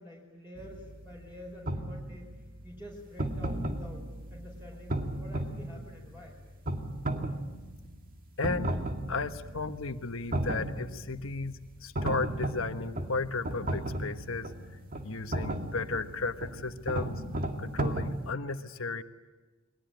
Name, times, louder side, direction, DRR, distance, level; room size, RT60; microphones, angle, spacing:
voice 1, 0.0-2.3 2.6-6.4, equal, 10° right, -2 dB, 5.0 m, -48 dB
sound 1, 0.6-18.3, right 1 dB, 45° right, 2.0 m, -35 dB
voice 2, 8.4-8.8 9.1-14.5 15.0-17.2 17.6-19.0, left 3 dB, 85° left, 8 dB, 1.3 m, -34 dB
29.0 x 22.0 x 9.2 m, 1.3 s
head